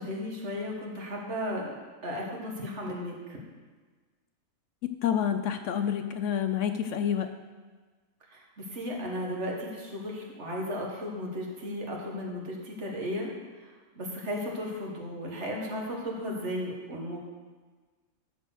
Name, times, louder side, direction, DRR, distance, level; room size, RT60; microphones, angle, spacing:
voice 1, 0.0-1.7 2.0-3.1 8.3-13.3 13.6-13.7 14.0-17.2, equal, 55° right, -2 dB, 1.9 m, -35 dB
voice 2, 4.8-7.3, left 9 dB, 70° left, 8 dB, 0.8 m, -28 dB
12.5 x 4.4 x 6.5 m, 1.4 s
omnidirectional pair, 1.5 m